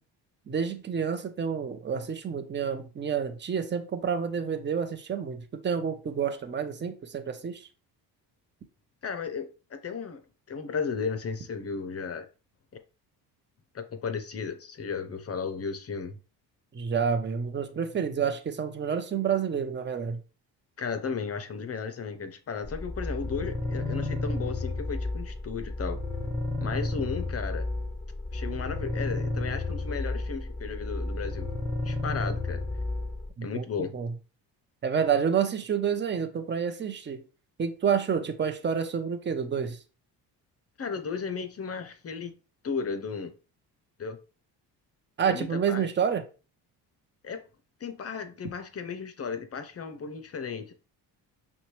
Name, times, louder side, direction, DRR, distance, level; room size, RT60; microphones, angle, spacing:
voice 1, 0.5-7.7 16.7-20.2 33.4-34.1 34.8-37.2 37.6-39.8 45.2-46.2, right 7 dB, 25° right, 0.7 m, -29 dB
voice 2, 9.0-10.2 10.5-12.3 13.7-16.2 20.8-26.0 26.6-27.7 28.3-31.5 31.8-32.6 33.4-33.9 40.8-42.3 42.6-43.3 44.0-44.2 45.3-45.9 47.2-47.4 47.8-50.7, left 5 dB, 35° left, 0.7 m, -34 dB
sound 1, 22.6-33.3, left 2 dB, 5° left, 0.9 m, -32 dB
5.7 x 2.3 x 3.1 m
cardioid pair, 80°, 41 cm